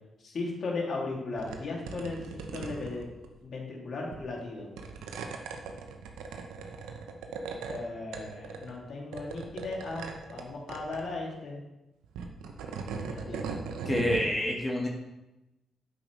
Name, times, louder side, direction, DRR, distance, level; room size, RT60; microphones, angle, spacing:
voice 1, 0.2-3.1 3.4-4.7 7.7-11.6 13.0-13.7, left 3 dB, 60° left, -2 dB, 2.5 m, -36 dB
sound 1, 1.4-1.6 1.9-3.3 4.1-4.4 4.8-7.8 8.1-8.8 9.1-10.4 10.7-11.0 12.0-14.3, right 5 dB, 85° right, 0.9 m, -39 dB
voice 2, 13.8-14.9, left 1 dB, 25° left, -1 dB, 1.7 m, -27 dB
8.6 x 6.9 x 3.2 m, 0.98 s
supercardioid pair, 55°, 0 cm